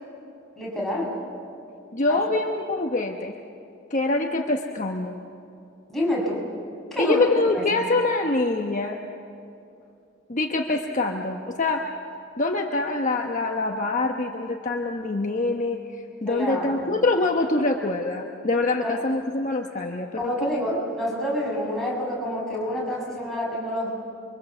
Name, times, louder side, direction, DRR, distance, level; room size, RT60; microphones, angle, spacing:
voice 1, 0.6-1.2 2.1-2.2 5.9-6.4 6.9-7.2 7.5-7.6 16.3-16.7 18.8-19.0 20.2-23.9, left 1 dB, ahead, -5 dB, 6.5 m, -27 dB
voice 2, 1.9-3.4 3.9-5.2 7.0-9.0 10.3-11.8 12.4-20.8, left 2 dB, 40° left, 2 dB, 1.1 m, -25 dB
29.5 x 23.5 x 7.3 m, 2.6 s
head